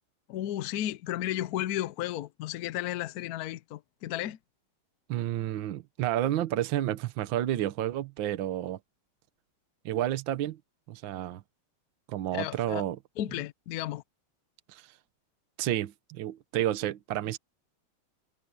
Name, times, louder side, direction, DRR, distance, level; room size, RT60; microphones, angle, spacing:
voice 1, 0.3-4.4 12.3-12.8 13.2-14.0, left 13 dB, 80° left, 0.8 m, -33 dB
voice 2, 5.1-8.8 9.8-10.6 10.9-11.4 12.1-13.0 14.7-14.9 15.6-17.4, right 12 dB, 70° right, 1.6 m, -30 dB
omnidirectional pair, 2.3 m